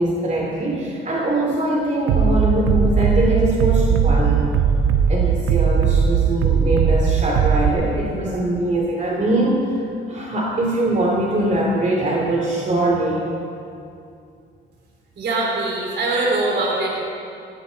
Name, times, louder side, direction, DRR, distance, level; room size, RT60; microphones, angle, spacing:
voice 1, 0.0-4.6 5.1-9.8 10.1-13.3, right 1 dB, 35° right, -2 dB, 2.6 m, -22 dB
Bass drum, 2.1-7.7, right 6 dB, 85° right, 1.1 m, -18 dB
voice 2, 15.2-17.0, right 2 dB, 60° right, -3 dB, 4.3 m, -22 dB
17.5 x 17.5 x 4.0 m, 2.5 s
cardioid pair, 90°, 20 cm